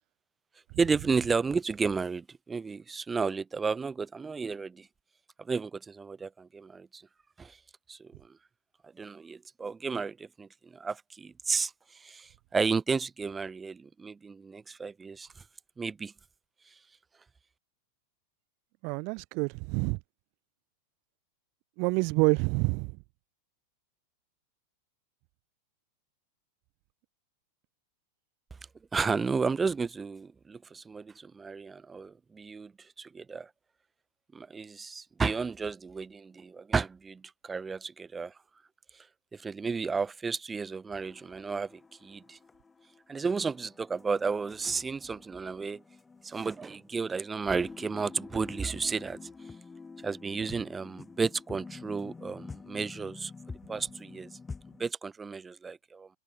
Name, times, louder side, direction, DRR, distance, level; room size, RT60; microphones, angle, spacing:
voice 1, 0.8-4.9 5.4-7.0 7.4-7.6 7.9-8.1 9.0-15.3 15.8-16.1 28.9-32.7 33.0-33.5 34.3-38.3 39.3-42.4 43.1-45.8 46.2-49.2 50.0-53.3 53.7-54.3 54.8-56.1, right 5 dB, 15° right, 1.0 m, -32 dB
voice 2, 18.8-20.0 21.8-22.9, right 33 dB, 45° right, 0.6 m, -27 dB
sound 1, 41.0-54.9, left 4 dB, 15° left, 7.7 m, -48 dB
figure-of-eight pair, 90°, 0 cm